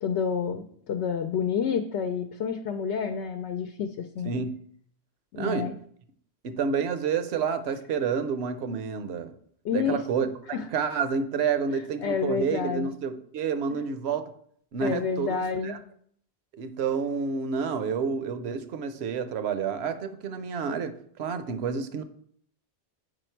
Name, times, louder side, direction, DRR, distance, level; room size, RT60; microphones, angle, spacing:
voice 1, 0.0-4.3 5.3-5.7 9.6-10.1 10.5-10.7 12.0-12.9 13.7-13.8 14.8-15.8, left 6 dB, 80° left, 7 dB, 0.8 m, -29 dB
voice 2, 5.4-5.7 6.4-9.3 9.7-10.3 10.7-14.3 14.7-15.8 16.5-22.0, right 6 dB, 75° right, 10 dB, 0.9 m, -29 dB
6.3 x 5.0 x 4.5 m, 0.62 s
omnidirectional pair, 1.1 m